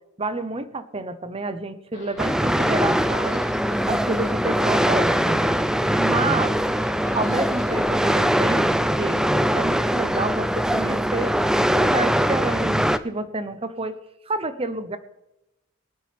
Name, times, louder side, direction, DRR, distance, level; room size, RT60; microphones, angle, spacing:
voice 1, 0.2-3.5 3.9-5.6 6.0-6.6 7.1-8.7 9.0-9.2 9.5-11.4 11.7-14.0 14.3-15.0, right 2 dB, 25° right, 11 dB, 0.8 m, -29 dB
Livestock farm animals working animals, 1.9-7.9, left 3 dB, 60° left, 3.5 m, -44 dB
sound 1, 2.2-13.0, equal, 5° right, 0.4 m, -22 dB
22.5 x 9.7 x 3.4 m, 0.90 s
head